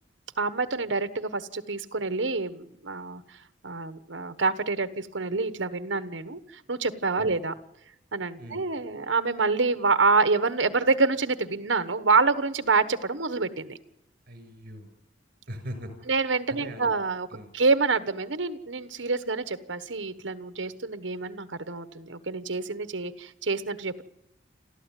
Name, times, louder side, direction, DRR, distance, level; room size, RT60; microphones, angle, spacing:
voice 1, 0.4-3.2 3.6-7.5 8.1-13.8 16.1-24.0, right 4 dB, 75° right, 12 dB, 1.3 m, -27 dB
voice 2, 14.3-14.9 15.5-15.9 16.5-16.9 17.3-17.5, equal, 55° right, 9 dB, 5.8 m, -40 dB
29.0 x 13.5 x 9.1 m, 0.86 s
head